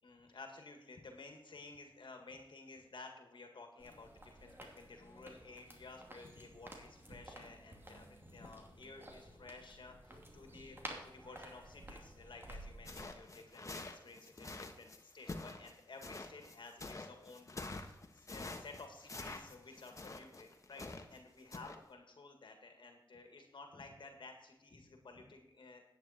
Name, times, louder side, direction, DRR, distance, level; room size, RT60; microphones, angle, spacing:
voice 1, 0.0-25.8, left 3 dB, 70° left, 4 dB, 1.8 m, -54 dB
sound 1, 3.8-13.1, right 1 dB, 25° right, 2.5 m, -53 dB
sound 2, 12.8-21.2 21.5-21.8, left 2 dB, 40° left, 1.2 m, -47 dB
10.5 x 9.2 x 4.3 m, 0.91 s
wide cardioid pair, 70°, 8 cm